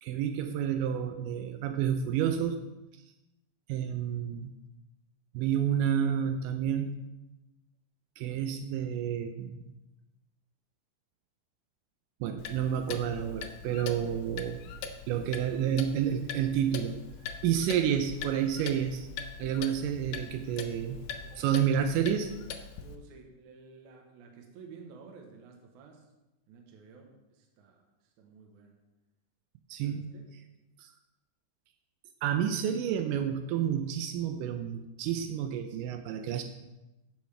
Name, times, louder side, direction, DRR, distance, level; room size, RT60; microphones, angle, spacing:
voice 1, 0.0-2.6 3.7-4.5 5.3-7.0 8.2-9.6 12.2-14.6 15.1-17.0 17.4-19.1 19.4-21.0 21.4-22.3 29.7-30.1 30.8-30.9 32.2-36.4, right 9 dB, 85° right, 6 dB, 2.2 m, -30 dB
Clock, 12.4-23.0, left 6 dB, 75° left, 2.1 m, -42 dB
voice 2, 13.8-14.2 15.0-15.9 21.2-21.4 22.8-26.1 26.5-28.8 29.8-30.3, right 4 dB, 70° right, 2 dB, 2.3 m, -52 dB
15.5 x 5.5 x 3.3 m, 1.0 s
omnidirectional pair, 3.8 m